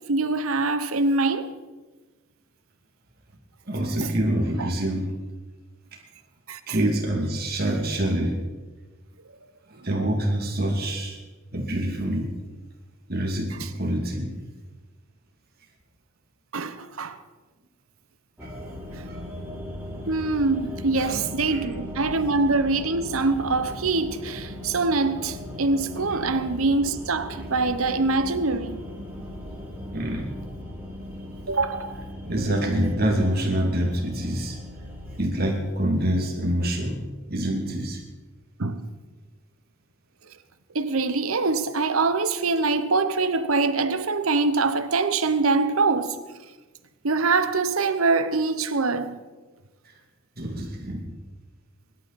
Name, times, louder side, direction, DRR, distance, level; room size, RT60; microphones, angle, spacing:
voice 1, 0.1-1.5 4.0-4.1 4.6-4.7 6.5-6.8 16.5-17.2 20.1-28.8 31.5-32.0 38.6-38.9 40.7-46.2 47.0-49.2, right 3 dB, 85° right, 1.0 m, -24 dB
voice 2, 3.7-5.0 6.7-8.4 9.7-11.2 11.5-12.3 13.1-14.3 18.4-18.6 19.0-19.3 21.0-21.2 21.5-21.7 29.9-30.3 32.2-34.6 35.2-37.0 37.3-38.0 50.4-51.0, right 1 dB, 45° right, 2.7 m, -26 dB
sound 1, 18.4-35.3, left 1 dB, 10° right, 3.0 m, -38 dB
24.5 x 12.0 x 4.2 m
head